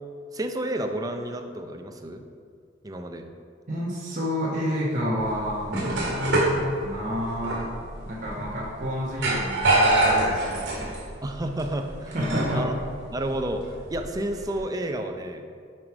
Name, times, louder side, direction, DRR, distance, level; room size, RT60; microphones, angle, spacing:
voice 1, 0.3-2.2 2.8-3.3 11.2-12.2 12.5-12.7 13.1-15.4, right 1 dB, 20° right, 5 dB, 0.5 m, -30 dB
voice 2, 3.7-7.7 8.1-10.9 12.1-12.6, equal, 40° right, -7 dB, 1.1 m, -29 dB
sound 1, 5.2-14.6, right 2 dB, 65° right, 1.9 m, -26 dB
7.5 x 4.9 x 4.9 m, 2.3 s
head